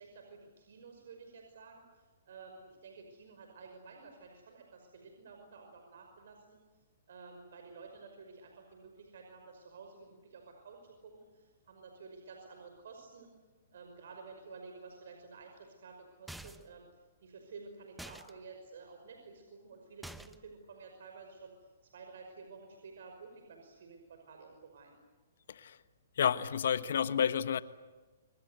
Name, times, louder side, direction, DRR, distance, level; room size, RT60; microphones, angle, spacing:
voice 1, 0.0-6.6 7.1-13.3 13.7-16.9 17.2-25.0, right 4 dB, 70° right, 5.6 m, -52 dB
sound 1, 16.3-16.8 18.0-18.3 20.0-20.5, right 1 dB, ahead, 0.9 m, -47 dB
voice 2, 26.2-27.6, left 8 dB, 70° left, 1.3 m, -30 dB
27.0 x 23.5 x 8.2 m
hypercardioid pair, 145°, 0 cm